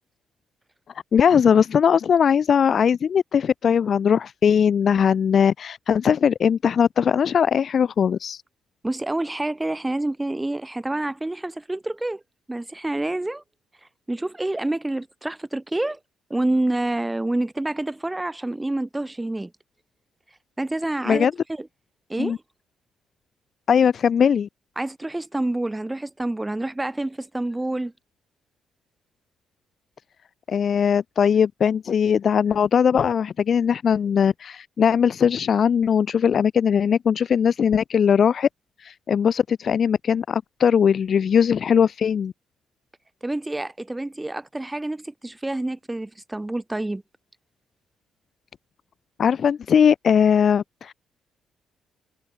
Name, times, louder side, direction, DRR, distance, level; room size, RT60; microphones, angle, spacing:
voice 1, 1.1-8.4 21.1-21.3 22.2-22.4 23.7-24.5 30.5-38.5 38.8-42.3 49.2-50.9, left 7 dB, 50° left, 0.3 m, -20 dB
voice 2, 8.8-12.2 12.5-13.4 14.1-16.0 16.3-19.5 20.6-21.7 22.1-22.3 24.8-27.9 43.2-47.0, right 2 dB, 10° right, 2.6 m, -27 dB
cardioid pair, 90°, 0 cm